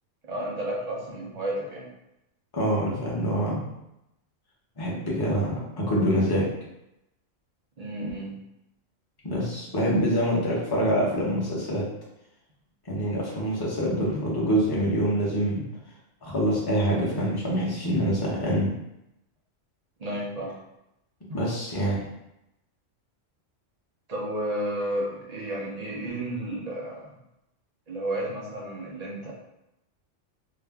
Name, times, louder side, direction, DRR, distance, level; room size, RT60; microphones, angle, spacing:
voice 1, 0.2-1.9 7.8-8.3 20.0-20.5 21.3-21.4 24.1-27.2 27.9-29.3, right 1 dB, 40° right, -3 dB, 0.6 m, -32 dB
voice 2, 2.5-3.6 4.8-6.5 9.2-11.8 12.9-15.6 16.2-18.7 21.3-22.0, equal, 25° left, -5 dB, 0.5 m, -25 dB
2.5 x 2.0 x 3.4 m, 0.88 s
omnidirectional pair, 1.3 m